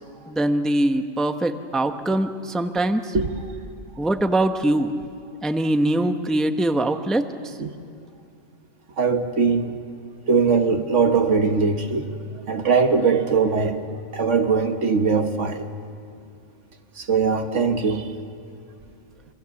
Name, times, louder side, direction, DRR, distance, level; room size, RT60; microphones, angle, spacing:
voice 1, 0.3-3.1 4.0-4.9 5.4-7.5, right 1 dB, ahead, 7 dB, 0.7 m, -22 dB
voice 2, 9.0-9.8 10.3-12.1 12.5-13.8 14.1-15.6 17.0-18.1, right 5 dB, 80° right, 6 dB, 1.7 m, -21 dB
27.5 x 23.0 x 7.1 m, 2.5 s
omnidirectional pair, 1.2 m